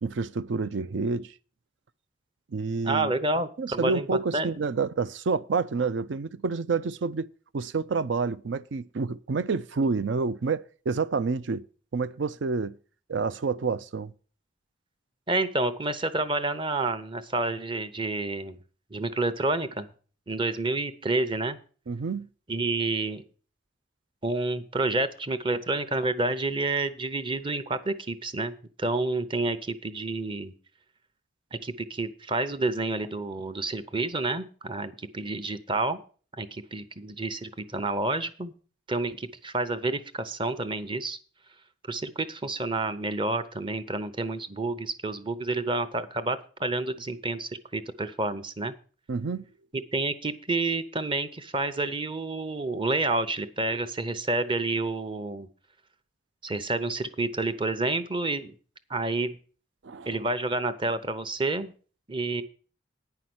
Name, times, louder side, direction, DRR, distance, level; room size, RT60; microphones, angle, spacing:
voice 1, 0.0-1.3 2.5-3.1 3.6-7.3 7.5-11.6 11.9-12.8 13.1-14.1 21.9-22.3 49.1-49.4 59.8-60.2, right 4 dB, 70° right, 0.5 m, -28 dB
voice 2, 2.8-4.1 4.3-4.5 15.3-18.6 18.9-19.9 20.3-21.6 22.5-23.2 24.2-28.5 28.8-30.5 31.5-36.0 36.4-38.5 38.9-41.2 41.9-48.7 49.7-55.5 56.4-58.5 58.9-59.4 60.1-61.7 62.1-62.4, right 2 dB, 25° right, 0.7 m, -29 dB
9.6 x 5.7 x 7.8 m
head